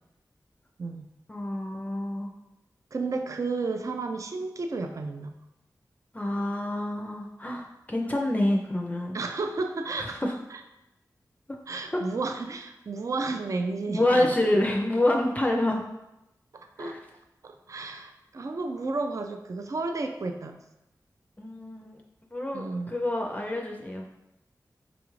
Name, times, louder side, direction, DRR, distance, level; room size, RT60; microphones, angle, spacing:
voice 1, 1.3-2.3 6.1-9.2 10.0-10.3 11.9-12.0 13.9-15.8 16.8-17.0 21.4-22.0 22.3-24.0, left 1 dB, 20° left, 0 dB, 0.4 m, -27 dB
voice 2, 2.9-5.4 9.1-10.2 10.5-10.6 11.7-14.4 16.5-17.0 17.4-20.6 22.5-22.9, right 3 dB, 50° right, 6 dB, 0.3 m, -32 dB
4.9 x 2.4 x 3.1 m, 0.93 s
cardioid pair, 45°, 7 cm